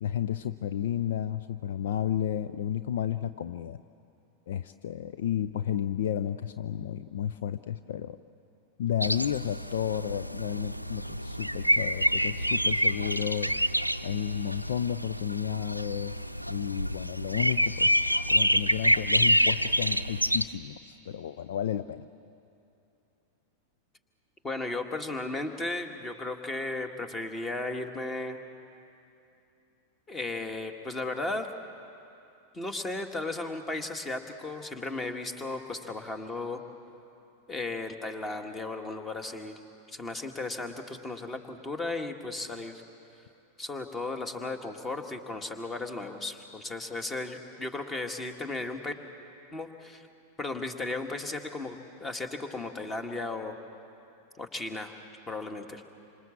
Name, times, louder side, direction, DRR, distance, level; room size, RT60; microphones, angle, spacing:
voice 1, 0.0-3.8 4.5-8.2 8.8-13.5 14.0-16.2 16.5-17.9 18.3-22.0, left 9 dB, 60° left, 12 dB, 0.5 m, -32 dB
sound 1, 9.0-20.4, equal, 90° right, 0.6 m, -27 dB
voice 2, 24.4-28.4 30.1-31.5 32.5-36.6 37.5-39.6 39.9-42.8 43.6-48.9 49.5-50.1 50.4-53.6 54.4-54.9 55.3-55.8, left 2 dB, 15° left, 6 dB, 1.9 m, -35 dB
27.5 x 26.0 x 7.3 m, 2.7 s
figure-of-eight pair, 90°, 0 cm